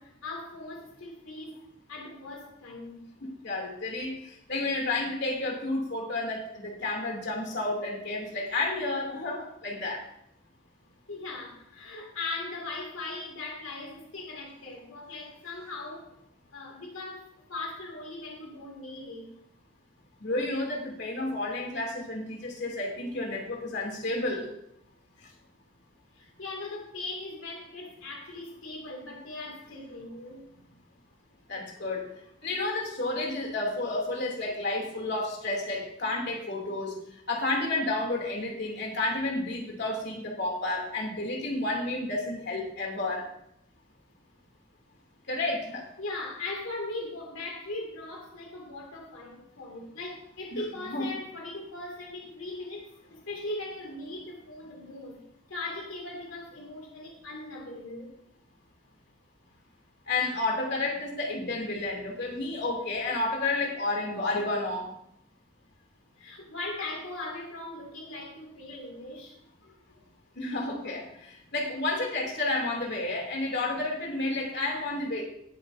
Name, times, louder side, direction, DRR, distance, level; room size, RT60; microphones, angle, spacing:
voice 1, 0.0-1.6 1.9-3.1 11.1-16.1 16.5-19.3 26.1-30.5 46.0-55.2 55.5-58.1 66.2-69.3, left 2 dB, 85° left, -1 dB, 2.6 m, -39 dB
voice 2, 3.2-10.0 20.2-24.5 31.5-32.1 32.4-37.0 37.3-43.3 45.3-45.9 50.5-50.6 50.9-51.1 60.1-64.9 70.4-75.2, left 2 dB, 55° left, 0 dB, 3.0 m, -31 dB
19.5 x 7.5 x 2.8 m, 0.76 s
head